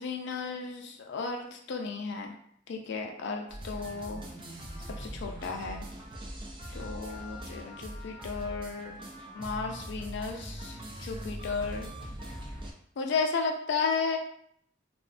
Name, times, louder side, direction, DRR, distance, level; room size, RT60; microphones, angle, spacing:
voice 1, 0.0-2.4 2.7-4.2 5.0-5.9 6.7-9.0 9.4-11.9 13.0-14.2, left 4 dB, 60° left, 3 dB, 0.4 m, -34 dB
sound 1, 3.5-12.7, right 1 dB, 25° right, 0.4 m, -41 dB
2.4 x 2.1 x 2.4 m, 0.67 s
head